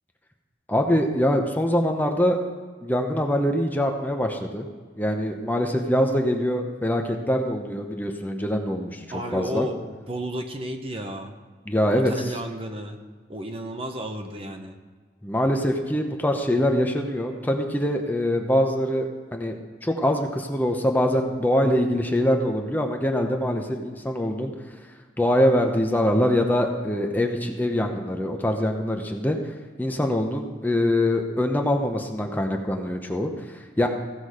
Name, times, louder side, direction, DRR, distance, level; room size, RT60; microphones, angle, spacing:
voice 1, 0.7-2.4 2.8-4.7 5.0-9.1 9.3-9.7 11.7-12.1 15.2-19.5 19.8-24.5 25.2-29.4 29.8-33.9, left 1 dB, 10° left, 3 dB, 0.8 m, -24 dB
voice 2, 9.1-11.3 11.9-13.0 13.3-14.8, equal, 30° right, 5 dB, 0.9 m, -32 dB
15.5 x 6.2 x 4.9 m, 1.5 s
head